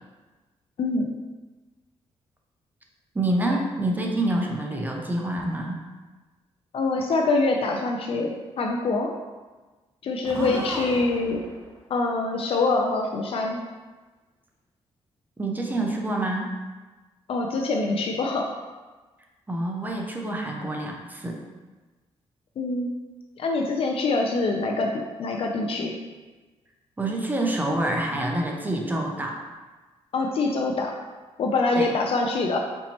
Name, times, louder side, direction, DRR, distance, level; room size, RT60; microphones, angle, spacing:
voice 1, 0.8-1.2 6.7-9.1 10.0-11.4 11.9-13.6 17.3-18.5 22.6-22.9 23.4-26.0 30.1-30.9 31.4-32.6, left 3 dB, 60° left, 1 dB, 0.5 m, -25 dB
voice 2, 3.1-5.8 10.3-10.8 15.4-16.6 19.5-21.4 27.0-29.4 31.8-31.9, right 1 dB, 15° right, 0 dB, 0.7 m, -27 dB
Explosion, 10.2-11.9 12.4-13.3, left 1 dB, 25° left, 1.2 m, -41 dB
4.5 x 4.1 x 2.9 m, 1.3 s
cardioid pair, 105°, 11 cm